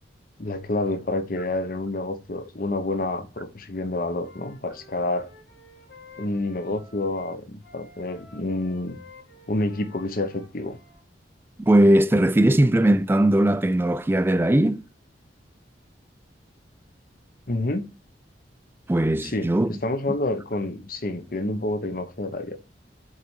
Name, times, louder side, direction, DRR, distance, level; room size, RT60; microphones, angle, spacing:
voice 1, 0.4-5.3 6.2-9.0 9.5-10.8 17.5-17.8 19.2-22.6, left 2 dB, 50° left, 0.9 m, -28 dB
Wind instrument woodwind instrument, 4.2-11.0, left 3 dB, 85° left, 3.6 m, -51 dB
voice 2, 11.6-14.8 18.9-19.7, right 1 dB, 10° right, 0.3 m, -19 dB
7.8 x 4.1 x 4.8 m
head